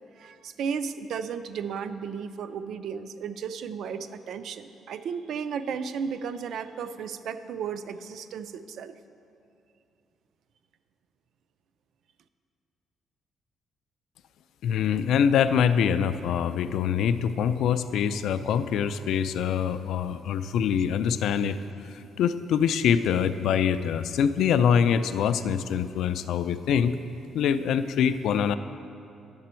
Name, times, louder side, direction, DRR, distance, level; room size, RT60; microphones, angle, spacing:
voice 1, 0.2-9.0, right 6 dB, 70° right, 11 dB, 0.4 m, -34 dB
voice 2, 14.6-21.6 21.9-27.0 27.3-28.6, left 8 dB, 75° left, 12 dB, 0.3 m, -24 dB
10.5 x 6.8 x 4.4 m, 2.6 s
cardioid pair, 130°, 0 cm